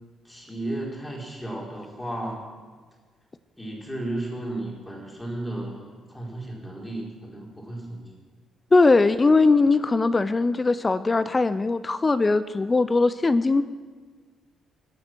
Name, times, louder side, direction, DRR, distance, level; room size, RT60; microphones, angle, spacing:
voice 1, 0.2-2.4 3.6-8.1, right 1 dB, 10° left, -3 dB, 4.5 m, -34 dB
voice 2, 8.7-13.6, left 3 dB, 25° left, 14 dB, 0.6 m, -20 dB
22.5 x 7.9 x 6.2 m, 1.5 s
cardioid pair, 90°, 0 cm